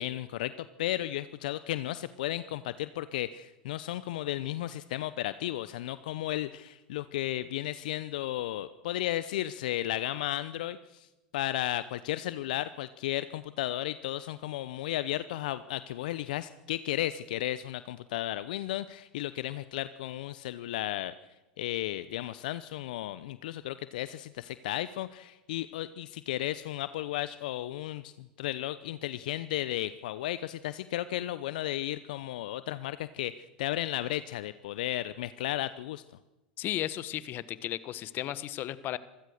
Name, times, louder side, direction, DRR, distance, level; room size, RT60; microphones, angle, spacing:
voice 1, 0.0-21.2 21.6-36.0, left 14 dB, 70° left, 15 dB, 0.7 m, -34 dB
voice 2, 36.6-39.0, left 13 dB, 45° left, 17 dB, 1.2 m, -34 dB
26.0 x 16.0 x 6.5 m, 1.0 s
hypercardioid pair, 95°, 5 cm